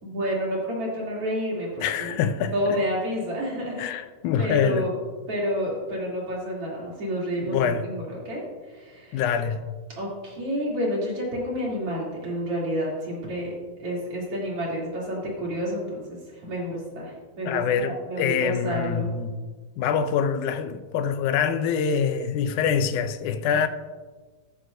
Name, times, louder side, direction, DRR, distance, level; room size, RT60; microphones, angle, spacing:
voice 1, 0.0-2.2 2.5-3.8 4.4-5.0 5.3-9.2 10.0-13.5 13.8-19.1, equal, 45° right, 3.9 m, -29 dB
voice 2, 1.8-2.5 3.8-4.9 7.5-7.9 9.1-9.7 17.5-19.4 19.8-23.7, left 7 dB, 80° left, 2.1 m, -25 dB
14.0 x 13.0 x 2.7 m
omnidirectional pair, 3.7 m